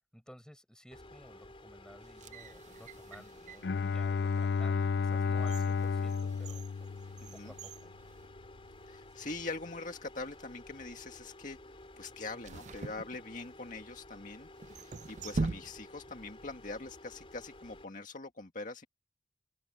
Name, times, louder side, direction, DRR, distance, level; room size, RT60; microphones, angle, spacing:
voice 1, 0.1-6.6 7.3-7.9, equal, 5° left, 5.8 m, -54 dB
sound 1, 0.9-17.8, left 1 dB, 30° left, 4.0 m, -53 dB
sound 2, 2.0-3.8 4.4-4.5 5.1-8.8 9.1-9.2 10.0-10.4 12.4-13.7 14.6-16.1 16.4-16.5, right 3 dB, 45° right, 0.5 m, -42 dB
Bowed string instrument, 3.6-7.6, left 5 dB, 70° left, 0.5 m, -32 dB
voice 2, 7.2-7.5 8.9-11.6 12.0-18.9, left 3 dB, 45° left, 1.9 m, -43 dB
open air
head